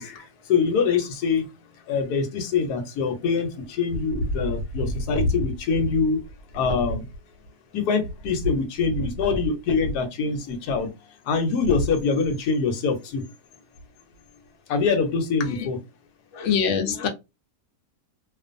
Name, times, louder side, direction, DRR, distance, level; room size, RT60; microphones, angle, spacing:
voice 1, 0.0-1.5 1.9-6.2 6.5-7.1 7.7-10.9 11.2-13.2 14.7-15.8, left 4 dB, 90° left, 1.2 m, -24 dB
voice 2, 16.3-17.1, left 7 dB, 60° left, 0.9 m, -23 dB
2.5 x 2.5 x 2.5 m
omnidirectional pair, 1.6 m